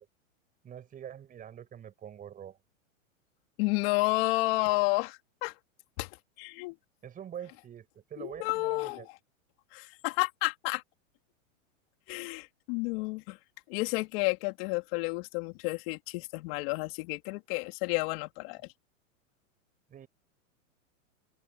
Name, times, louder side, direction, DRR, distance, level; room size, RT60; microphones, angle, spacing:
voice 1, 0.6-2.6 7.0-9.1 19.9-20.1, right 9 dB, 20° right, 6.2 m, -45 dB
voice 2, 3.6-5.5 6.0-6.1 6.4-6.7 8.2-9.1 9.7-10.8 12.1-13.4 13.7-18.7, left 25 dB, 45° left, 3.4 m, -31 dB
open air
supercardioid pair, 150°, 40 cm